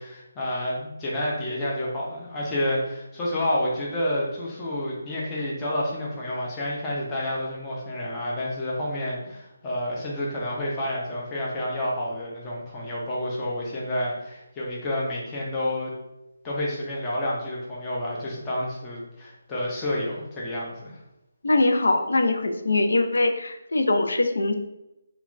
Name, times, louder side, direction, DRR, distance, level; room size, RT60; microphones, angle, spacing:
voice 1, 0.0-15.9 16.4-21.0, left 1 dB, 10° left, -5 dB, 0.4 m, -29 dB
voice 2, 21.4-24.5, left 2 dB, 75° left, 6 dB, 0.3 m, -22 dB
3.1 x 2.2 x 2.4 m, 0.90 s
hypercardioid pair, 175°, 0 cm